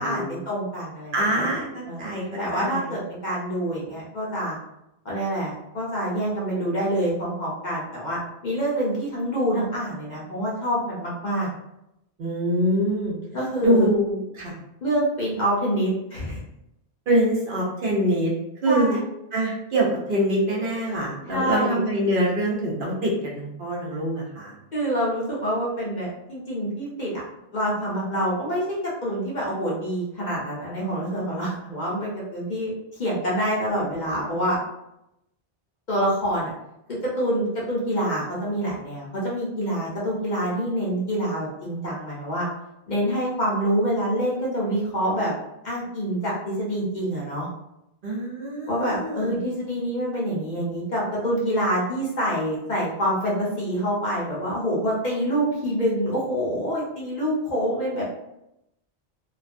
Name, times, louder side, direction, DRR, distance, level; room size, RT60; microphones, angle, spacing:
voice 1, 0.0-1.5 1.8-2.0 2.4-4.6 5.0-11.5 13.3-13.9 14.8-16.4 18.7-19.0 21.2-21.8 24.7-27.2 27.5-32.7 33.0-34.6 35.9-36.5 36.9-42.5 42.9-45.3 45.6-47.5 48.7-58.0, equal, 50° left, -5 dB, 0.7 m, -26 dB
voice 2, 1.1-2.2 2.5-2.9 12.2-13.2 13.6-14.6 17.1-18.3 18.6-19.0 19.3-24.5 48.0-49.4, right 1 dB, 55° right, -4 dB, 0.7 m, -24 dB
2.4 x 2.2 x 2.4 m, 0.85 s
omnidirectional pair, 1.2 m